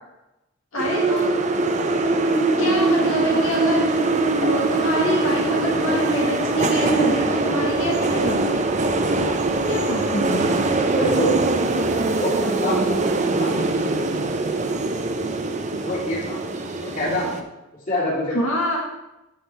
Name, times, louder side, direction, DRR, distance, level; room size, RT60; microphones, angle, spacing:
voice 1, 0.7-1.4 2.6-3.9 4.4-8.5 9.7-10.6 18.3-18.8, equal, 90° left, -3 dB, 1.8 m, -26 dB
sound 1, 0.8-17.4, right 3 dB, 35° right, 0.6 m, -22 dB
sound 2, 2.1-7.1, right 2 dB, 15° left, 1.5 m, -27 dB
voice 2, 10.7-11.3 12.1-13.0 13.4-13.5 15.8-16.4 16.8-17.3 17.9-18.4, equal, 40° left, -6 dB, 3.2 m, -25 dB
13.0 x 5.3 x 3.4 m, 0.96 s
head